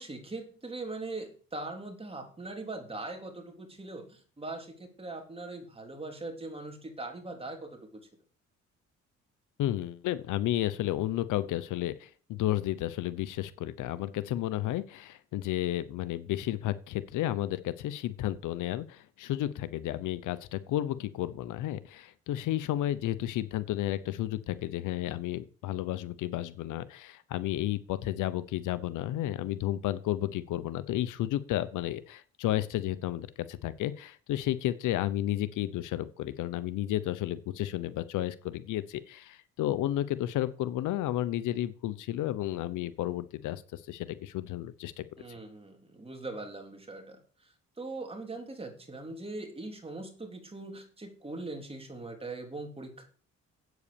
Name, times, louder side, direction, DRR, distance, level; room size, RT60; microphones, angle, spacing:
voice 1, 0.0-7.8 45.2-53.0, right 2 dB, 20° right, 3 dB, 3.3 m, -41 dB
voice 2, 9.6-45.4, left 13 dB, 85° left, 16 dB, 0.8 m, -32 dB
8.5 x 8.2 x 6.9 m, 0.41 s
cardioid pair, 90°, 30 cm